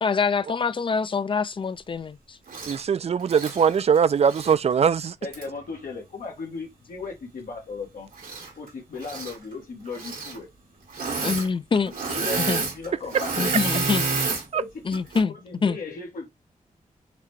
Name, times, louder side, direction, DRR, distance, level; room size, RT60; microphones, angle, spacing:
voice 1, 0.0-2.4 11.2-11.9 12.4-12.6 13.4-14.1 14.8-15.4 15.6-15.8, left 5 dB, 40° left, 0.4 m, -25 dB
Engine / Mechanisms, 2.5-2.8 3.2-4.6 5.3-5.4 8.1-8.7 9.0-9.4 9.9-10.4 10.9-11.5 11.7-14.4 14.9-15.2, right 4 dB, 85° right, 1.6 m, -29 dB
voice 2, 2.7-5.2 14.5-14.6, right 7 dB, 50° right, 0.4 m, -21 dB
voice 3, 5.2-8.1 8.6-10.5 12.1-13.5 14.5-14.7 15.3-16.3, left 4 dB, 85° left, 1.2 m, -36 dB
5.8 x 2.2 x 3.1 m
wide cardioid pair, 110°, 14 cm